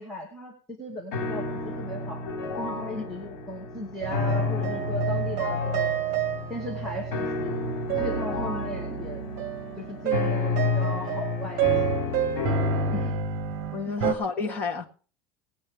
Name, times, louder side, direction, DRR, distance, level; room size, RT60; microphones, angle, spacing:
voice 1, 0.0-1.4 1.8-2.2 2.6-5.9 6.5-7.6 8.0-9.3 9.8-11.6 12.9-13.2 14.5-14.6, left 1 dB, 5° left, -2 dB, 2.0 m, -36 dB
sound 1, 1.1-13.1, left 4 dB, 60° left, 4.3 m, -31 dB
sound 2, 4.0-14.1, right 8 dB, 45° right, 1.5 m, -29 dB
voice 2, 13.7-14.9, left 5 dB, 20° left, 2 dB, 1.8 m, -30 dB
18.5 x 8.6 x 4.8 m, 0.39 s
cardioid pair, 180°, 8 cm